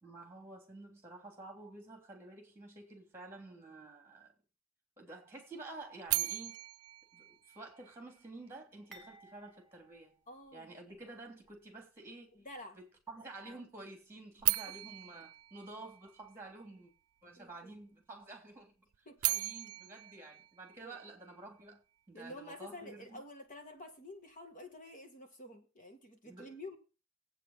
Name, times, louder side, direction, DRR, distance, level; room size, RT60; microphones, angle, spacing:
voice 1, 0.0-4.3 5.0-6.6 7.1-10.2 10.5-12.3 12.7-16.9 17.2-18.9 19.2-23.2 26.2-26.5, right 2 dB, 10° right, 3.1 m, -50 dB
sound 1, 6.1-8.2 14.4-16.6 18.9-21.4, right 18 dB, 85° right, 0.4 m, -37 dB
sound 2, 8.9-11.1 11.4-11.6 12.5-12.6, right 2 dB, 5° left, 2.7 m, -59 dB
voice 2, 10.3-10.8 12.3-12.8 14.7-14.8 17.4-17.7 19.1-19.2 20.8-21.0 22.1-26.8, left 1 dB, 40° left, 2.1 m, -49 dB
8.4 x 6.5 x 7.3 m
head